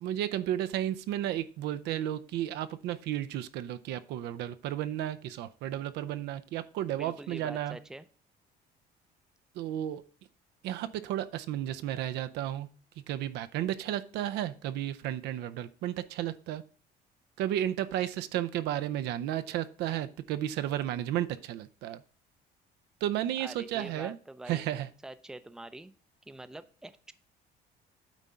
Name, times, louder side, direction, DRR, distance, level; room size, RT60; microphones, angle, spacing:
voice 1, 0.0-7.8 9.6-10.0 10.6-12.7 13.1-16.6 17.4-22.0 23.0-24.2 24.5-24.9, right 12 dB, 85° right, 11 dB, 0.6 m, -33 dB
voice 2, 7.0-8.1 23.4-24.7 25.0-25.9 26.3-27.1, right 1 dB, 5° right, 12 dB, 0.5 m, -45 dB
9.1 x 3.6 x 5.6 m, 0.42 s
cardioid pair, 110°, 17 cm